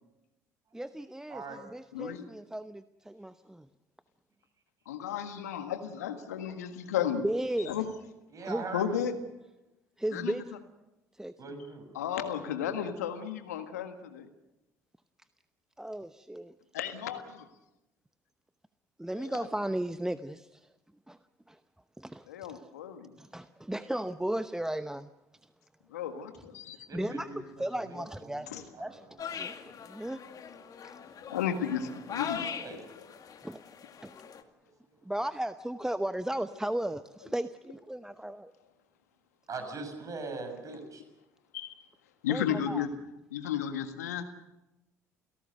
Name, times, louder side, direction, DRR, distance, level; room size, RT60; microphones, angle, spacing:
voice 1, 0.7-3.7 7.2-7.7 8.5-8.7 10.0-10.4 11.2-11.3 15.8-16.5 19.0-20.6 21.1-21.2 21.5-21.6 22.0-22.6 23.2-25.1 26.9-27.3 27.6-29.5 29.8-30.2 30.8-30.9 33.4-33.6 34.0-34.1 35.1-38.5 42.3-42.9, right 1 dB, 5° right, 12 dB, 0.8 m, -35 dB
voice 2, 1.3-1.6 8.3-9.0 11.4-11.9 26.9-29.0 29.3-29.8 32.1-32.8 34.1-34.2 39.5-41.0, right 3 dB, 40° right, 7 dB, 6.8 m, -42 dB
voice 3, 1.9-2.3 4.9-7.3 7.7-7.9 8.7-9.1 10.1-10.3 12.0-14.3 16.7-17.5 19.1-19.5 22.3-23.2 25.9-26.9 28.5-28.6 31.3-32.8 40.7-40.8 41.5-41.8 42.2-42.9 43.3-44.2, left 9 dB, 85° left, 8 dB, 1.7 m, -34 dB
sound 1, 29.2-34.4, left 7 dB, 45° left, 2.1 m, -41 dB
29.5 x 17.5 x 6.7 m, 0.96 s
hypercardioid pair, 60°, 8 cm